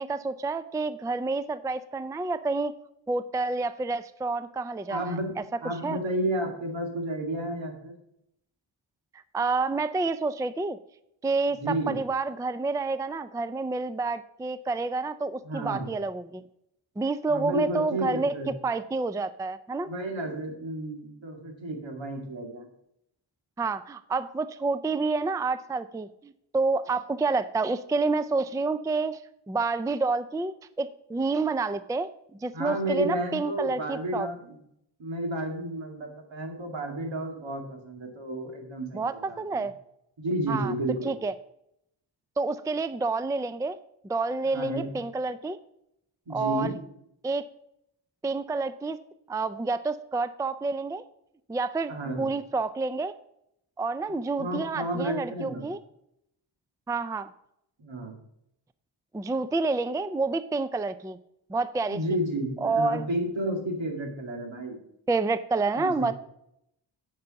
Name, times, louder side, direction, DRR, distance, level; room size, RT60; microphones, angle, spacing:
voice 1, 0.0-2.7 3.1-5.4 5.8-6.0 9.3-10.8 11.2-16.4 17.0-19.9 23.6-29.2 29.5-32.1 32.4-34.3 38.9-39.7 40.5-40.7 41.0-41.3 42.4-43.8 44.0-45.6 46.3-46.7 47.2-47.4 48.2-49.0 49.3-51.0 51.5-51.9 52.2-53.1 53.8-55.8 56.9-57.3 59.1-61.2 61.5-62.0 62.6-63.1 65.1-66.1, right 3 dB, 10° right, 13 dB, 0.4 m, -28 dB
voice 2, 4.9-5.3 5.6-7.9 11.5-12.0 15.4-15.9 17.3-18.5 19.9-22.7 32.5-34.6 35.0-39.7 40.2-41.1 44.5-45.0 46.3-46.8 51.9-52.3 54.4-55.7 57.8-58.2 61.9-64.8 65.8-66.1, right 1 dB, 75° right, 2 dB, 2.4 m, -32 dB
9.5 x 5.4 x 5.8 m, 0.77 s
cardioid pair, 70°, 46 cm